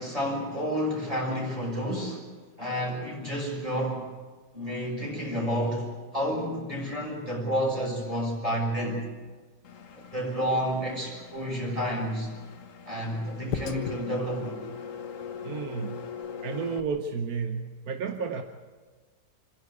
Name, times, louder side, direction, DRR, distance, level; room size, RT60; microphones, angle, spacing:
voice 1, 0.0-2.2 2.6-4.0 4.5-9.0 10.1-12.3 12.9-14.6, equal, 20° right, -2 dB, 6.0 m, -30 dB
Engine, 9.6-16.8, left 7 dB, 50° left, 1.3 m, -41 dB
sound 1, 13.5-14.0 16.0-16.3, left 9 dB, 75° left, 1.4 m, -36 dB
voice 2, 15.4-16.0 16.4-18.4, right 5 dB, 60° right, 5 dB, 1.4 m, -32 dB
27.0 x 11.0 x 9.5 m, 1.4 s
omnidirectional pair, 1.9 m